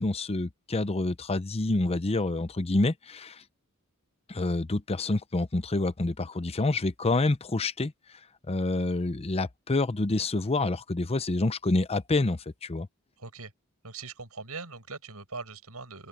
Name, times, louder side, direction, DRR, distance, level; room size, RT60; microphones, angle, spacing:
voice 1, 0.0-3.4 4.3-7.9 8.5-12.9, left 2 dB, 30° left, 0.7 m, -27 dB
voice 2, 13.2-13.5 13.8-16.1, right 4 dB, 85° right, 7.5 m, -41 dB
head